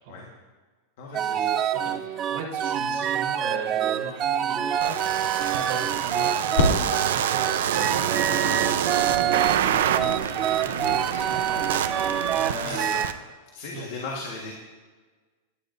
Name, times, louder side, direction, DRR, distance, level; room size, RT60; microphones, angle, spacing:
voice 1, 1.0-1.5 12.6-13.0 13.5-14.5, left 3 dB, 50° left, -1 dB, 1.4 m, -36 dB
sound 1, 1.1-13.1, right 9 dB, 20° right, 0.3 m, -26 dB
voice 2, 1.7-6.5 6.9-10.3 10.6-12.9 13.7-13.8, right 3 dB, 45° right, -5 dB, 3.8 m, -38 dB
sound 2, 4.8-13.1, right 10 dB, 70° right, 0.6 m, -27 dB
sound 3, 6.6-12.3, left 2 dB, 75° left, 2.5 m, -32 dB
18.0 x 10.0 x 2.6 m, 1.4 s
supercardioid pair, 180°, 0 cm